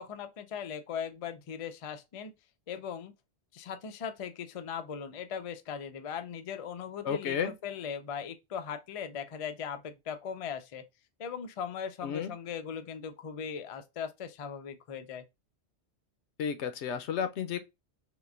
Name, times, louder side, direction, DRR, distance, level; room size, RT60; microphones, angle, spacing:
voice 1, 0.0-2.3 2.7-3.1 3.5-10.8 11.2-15.2, left 7 dB, 60° left, 0.3 m, -39 dB
voice 2, 7.0-7.5 12.0-12.3 16.4-17.6, left 7 dB, 85° left, 0.9 m, -32 dB
3.5 x 2.5 x 2.4 m
omnidirectional pair, 1.1 m